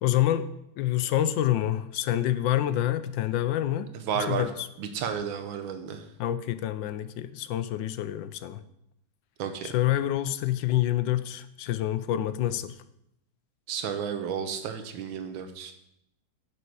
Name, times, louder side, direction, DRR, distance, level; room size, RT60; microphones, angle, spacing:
voice 1, 0.0-0.5 0.8-3.9 4.1-4.7 6.2-8.6 9.6-12.8, left 12 dB, 75° left, 13 dB, 1.2 m, -27 dB
voice 2, 4.1-4.5 4.8-6.1 9.4-9.7 13.7-15.7, right 7 dB, 80° right, 7 dB, 1.7 m, -32 dB
10.5 x 6.2 x 4.7 m, 0.79 s
omnidirectional pair, 2.2 m